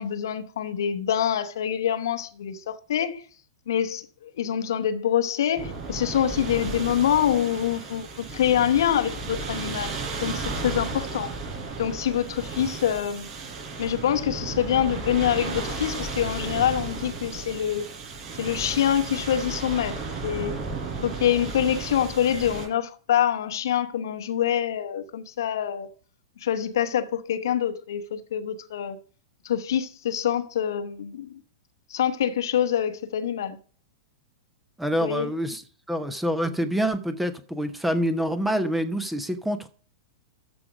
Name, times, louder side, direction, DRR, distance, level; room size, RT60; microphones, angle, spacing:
voice 1, 0.0-3.2 3.7-11.3 11.8-13.3 13.8-17.9 18.4-20.6 21.0-25.9 26.4-29.0 29.4-31.4 31.9-33.6 35.0-35.3, left 9 dB, 55° left, 1.0 m, -25 dB
sound 1, 5.6-22.7, right 3 dB, 30° right, 5.9 m, -34 dB
voice 2, 34.8-35.6 35.9-39.7, equal, 5° right, 0.9 m, -26 dB
13.5 x 4.9 x 5.0 m
figure-of-eight pair, 100°, 2 cm